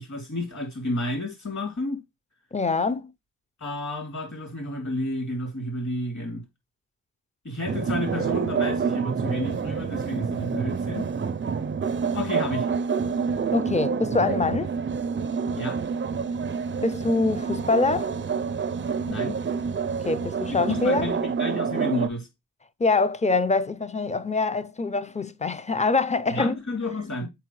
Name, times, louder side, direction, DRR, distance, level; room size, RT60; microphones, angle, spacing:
voice 1, 0.0-2.0 3.6-6.4 7.4-11.1 12.1-12.7 15.5-15.8 19.1-19.4 20.5-22.3 26.3-27.3, left 1 dB, 45° left, 3.0 m, -31 dB
voice 2, 2.5-3.1 13.5-14.7 16.8-18.1 20.0-21.1 22.8-26.5, left 3 dB, 20° left, 0.6 m, -24 dB
sound 1, 7.7-22.1, right 6 dB, 30° right, 0.5 m, -28 dB
6.7 x 4.6 x 3.1 m
cardioid pair, 60°, 39 cm